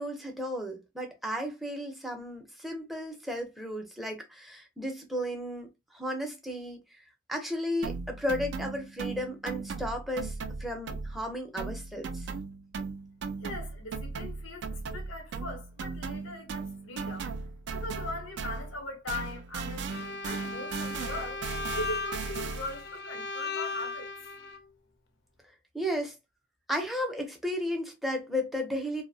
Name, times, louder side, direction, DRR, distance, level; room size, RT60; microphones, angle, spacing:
voice 1, 0.0-6.8 7.3-10.3 10.6-12.3 25.7-26.2 26.7-29.0, equal, ahead, 0.5 m, -34 dB
sound 1, 7.8-11.3 11.6-18.8 19.1-22.9, right 4 dB, 60° right, 0.3 m, -37 dB
voice 2, 13.4-17.3 17.7-21.4 21.7-24.1, left 2 dB, 90° left, 0.7 m, -40 dB
Bowed string instrument, 19.9-24.6, left 4 dB, 55° left, 0.4 m, -37 dB
2.6 x 2.0 x 2.6 m
head